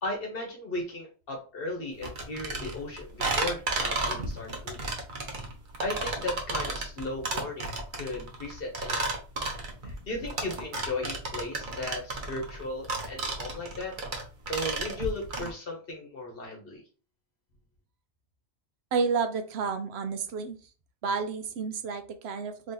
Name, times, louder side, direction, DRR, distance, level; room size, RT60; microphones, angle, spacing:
voice 1, 0.0-4.8 5.8-9.1 9.8-14.0 14.5-16.8, left 2 dB, 60° left, 1 dB, 1.1 m, -36 dB
sound 1, 2.0-15.5, right 2 dB, 50° right, 0.9 m, -33 dB
voice 2, 18.9-20.6 21.0-22.7, right 5 dB, 75° right, 8 dB, 0.9 m, -30 dB
3.0 x 2.8 x 3.7 m, 0.36 s
omnidirectional pair, 1.1 m